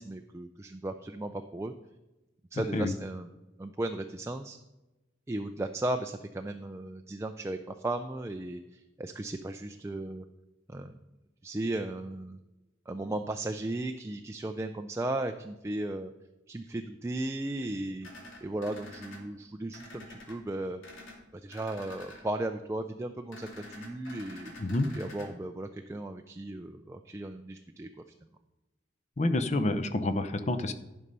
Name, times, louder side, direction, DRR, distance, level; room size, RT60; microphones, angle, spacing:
voice 1, 0.0-1.7 2.5-3.3 3.6-4.6 5.3-10.3 10.7-11.0 11.4-12.4 12.9-16.1 16.5-18.1 18.4-20.8 21.3-24.5 24.9-27.9, right 1 dB, 15° right, 6 dB, 0.3 m, -36 dB
sound 1, 18.0-19.2 19.7-20.3 20.8-21.2 21.5-22.2 23.3-25.3, left 2 dB, 75° left, 2.5 m, -47 dB
voice 2, 29.2-30.7, left 2 dB, 35° left, 10 dB, 0.6 m, -28 dB
11.5 x 5.4 x 5.3 m, 1.0 s
head